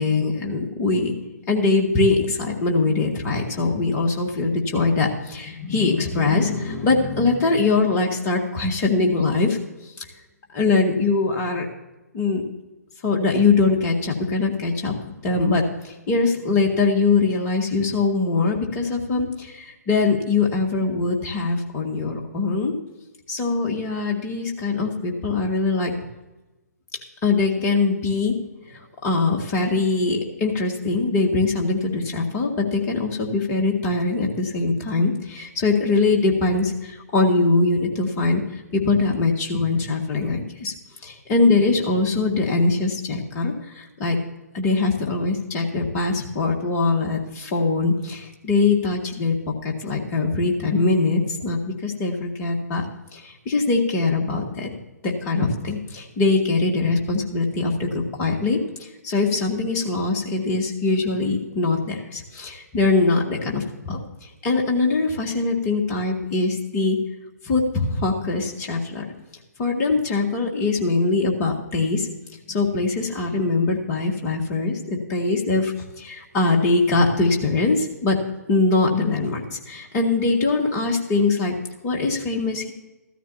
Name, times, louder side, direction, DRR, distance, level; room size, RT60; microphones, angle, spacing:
voice 1, 0.0-9.6 9.8-10.1 10.5-11.7 12.1-12.4 13.0-14.9 15.2-22.7 23.3-25.9 27.2-28.4 28.7-40.7 41.0-44.2 44.5-52.9 53.1-54.7 55.0-67.0 67.4-69.0 69.6-72.1 72.5-78.2 78.5-81.6 81.8-82.7, left 3 dB, 25° left, 0 dB, 1.8 m, -22 dB
15.0 x 13.5 x 2.8 m, 1.0 s
figure-of-eight pair, 130°, 9 cm